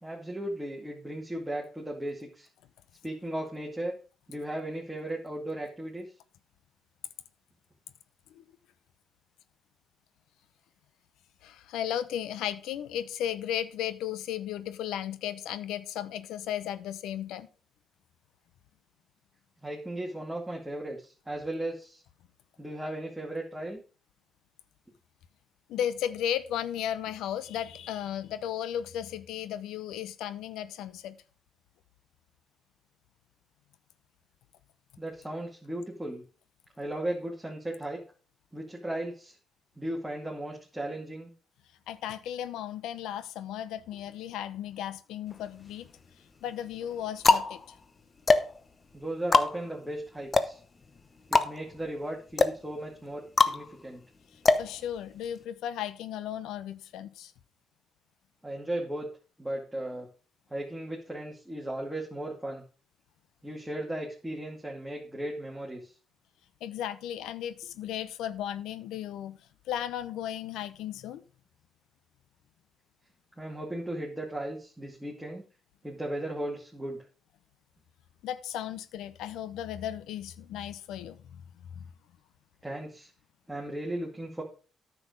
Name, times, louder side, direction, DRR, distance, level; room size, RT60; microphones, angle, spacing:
voice 1, 0.0-2.5 3.0-4.0 4.3-6.1 19.6-22.0 22.6-23.8 35.0-36.2 36.8-38.0 38.5-39.4 39.8-41.3 48.9-50.6 51.3-54.0 58.4-59.1 59.4-60.1 60.5-62.6 63.4-65.9 73.4-75.4 75.8-77.0 82.6-83.1 83.5-84.4, right 1 dB, 5° right, 2.3 m, -36 dB
voice 2, 11.4-17.5 25.7-31.2 41.9-45.9 46.4-47.8 54.6-57.3 66.6-69.4 69.7-71.2 78.2-81.2 81.7-81.9, left 10 dB, 90° left, 0.7 m, -35 dB
sound 1, 45.3-46.0 46.7-55.4, left 3 dB, 35° left, 0.9 m, -26 dB
9.7 x 6.9 x 5.2 m
cardioid pair, 90°, 0 cm